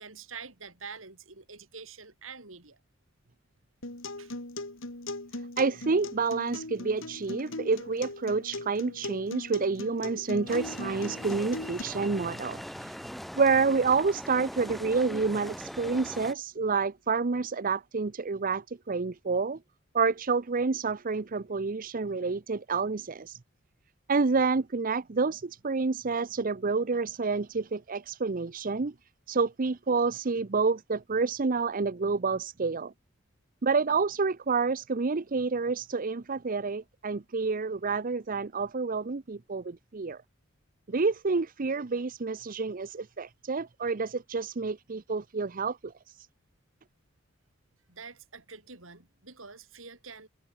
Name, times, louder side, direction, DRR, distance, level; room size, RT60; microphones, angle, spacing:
voice 1, 0.0-2.8 4.2-4.3 47.9-50.3, right 5 dB, 80° right, 5.0 m, -46 dB
Acoustic guitar, 3.8-11.8, left 2 dB, 75° left, 3.7 m, -40 dB
voice 2, 5.6-13.0 13.3-19.6 19.9-23.4 24.1-28.9 29.3-32.9 33.6-40.2 40.9-45.9, right 4 dB, 45° right, 0.7 m, -28 dB
sound 1, 10.5-16.3, equal, ahead, 2.8 m, -41 dB
head